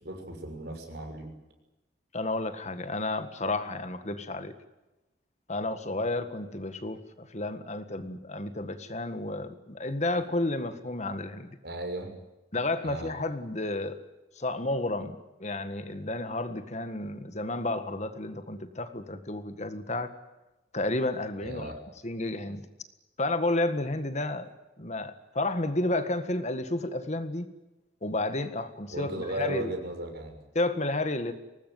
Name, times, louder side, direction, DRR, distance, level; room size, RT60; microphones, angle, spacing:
voice 1, 0.0-1.3 11.6-12.1 12.8-13.1 21.4-21.8 28.9-30.4, right 1 dB, 60° right, 5 dB, 6.4 m, -36 dB
voice 2, 2.1-4.6 5.5-11.6 12.5-14.0 14.4-15.2 15.4-20.1 20.7-21.7 22.0-22.7 23.2-24.5 24.8-27.5 28.0-29.7 30.6-31.3, left 2 dB, 40° left, 10 dB, 1.7 m, -31 dB
23.5 x 19.5 x 9.5 m, 1.0 s
head